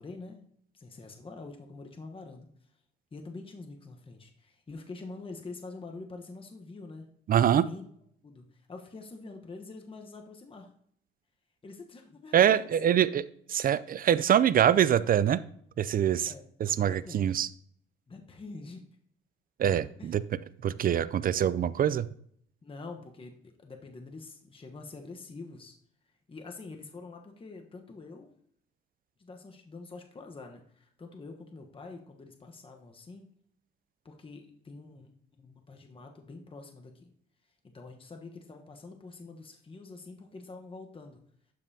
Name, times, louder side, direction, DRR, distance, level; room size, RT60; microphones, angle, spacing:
voice 1, 0.0-2.5 3.1-7.1 7.6-7.9 8.2-10.7 11.6-12.6 16.3-17.4 18.1-18.8 20.0-20.1 22.6-25.7 26.3-28.3 29.2-33.3 34.0-35.1 35.4-37.1 37.6-41.2, left 3 dB, 25° left, 3 dB, 1.0 m, -46 dB
voice 2, 7.3-7.7 12.3-15.4 15.8-16.3 16.6-17.5 19.6-20.2 20.6-22.1, right 9 dB, 45° right, 17 dB, 0.4 m, -24 dB
12.0 x 5.4 x 2.7 m, 0.64 s
cardioid pair, 90°, 20 cm